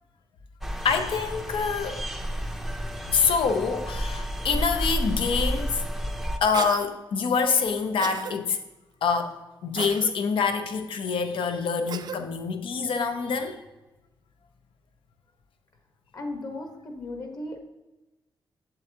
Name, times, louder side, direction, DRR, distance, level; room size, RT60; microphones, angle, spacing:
sound 1, 0.6-6.4, equal, ahead, 0.5 m, -31 dB
voice 1, 0.8-2.2 3.1-5.8 6.4-8.6 9.0-9.4 9.6-13.6, left 5 dB, 90° left, 7 dB, 0.8 m, -26 dB
Cough, 6.5-6.9 8.0-8.3 9.8-10.1 11.9-12.2, right 6 dB, 55° right, 0.5 m, -34 dB
voice 2, 16.1-17.6, left 2 dB, 45° left, 3 dB, 1.2 m, -36 dB
7.9 x 7.6 x 2.9 m, 1.1 s
wide cardioid pair, 170°, 9 cm